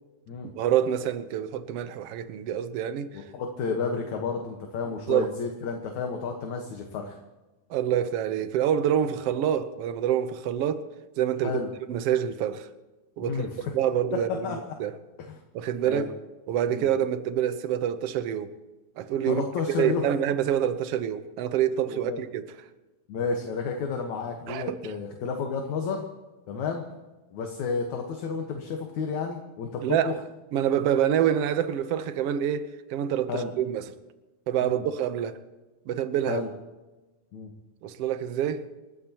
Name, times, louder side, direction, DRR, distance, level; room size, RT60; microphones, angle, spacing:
voice 1, 0.6-3.2 5.1-5.3 7.7-10.9 11.2-11.6 11.9-12.7 13.2-13.5 13.7-14.9 15.5-16.1 16.5-18.5 19.0-19.4 19.8-22.4 24.5-24.9 29.8-30.2 30.5-33.8 34.5-35.4 35.9-36.4 37.8-38.7, right 10 dB, 70° right, 1.5 m, -26 dB
voice 2, 3.1-7.2 11.4-11.7 13.2-13.7 14.3-14.6 15.2-15.4 15.8-16.1 16.7-16.9 19.2-20.1 21.9-22.2 23.1-26.0 26.5-26.8 27.3-30.2 33.3-33.5 34.6-34.8 36.3-36.5 37.3-37.5, left 5 dB, 65° left, 2.6 m, -31 dB
28.5 x 14.5 x 3.0 m
omnidirectional pair, 3.8 m